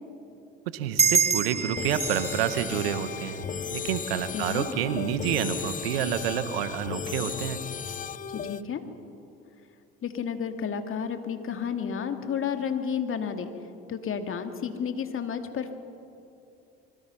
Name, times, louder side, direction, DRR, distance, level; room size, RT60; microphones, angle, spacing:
voice 1, 0.7-3.4 3.7-7.6, right 9 dB, 85° right, 11 dB, 1.3 m, -29 dB
sound 1, 1.0-4.1, right 6 dB, 20° right, 1.1 m, -28 dB
sound 2, 1.8-8.6, left 8 dB, 30° left, 0.6 m, -35 dB
voice 2, 4.3-4.7 8.3-8.8 10.0-13.5 13.9-15.7, left 7 dB, 45° left, 6 dB, 2.3 m, -31 dB
25.0 x 23.5 x 5.8 m, 2.7 s
hypercardioid pair, 65°, 29 cm